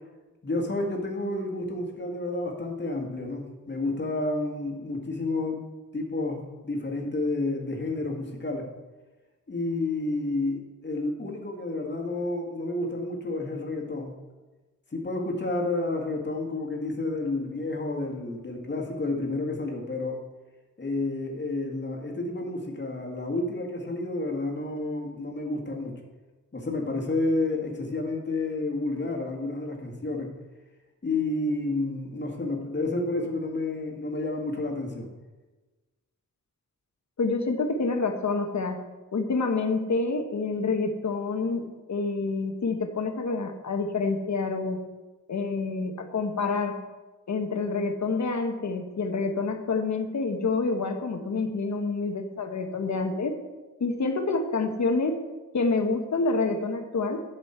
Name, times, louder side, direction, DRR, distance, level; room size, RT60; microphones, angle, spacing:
voice 1, 0.4-5.6 5.9-8.7 9.5-14.1 14.9-20.2 20.8-26.0 26.5-30.3 31.0-35.1, left 2 dB, 35° left, 0 dB, 1.8 m, -30 dB
voice 2, 37.2-38.8 39.1-44.8 45.3-46.8 47.3-53.4 53.8-55.2 55.5-57.2, left 3 dB, 55° left, 5 dB, 1.2 m, -27 dB
11.5 x 7.5 x 4.4 m, 1.2 s
wide cardioid pair, 150°, 33 cm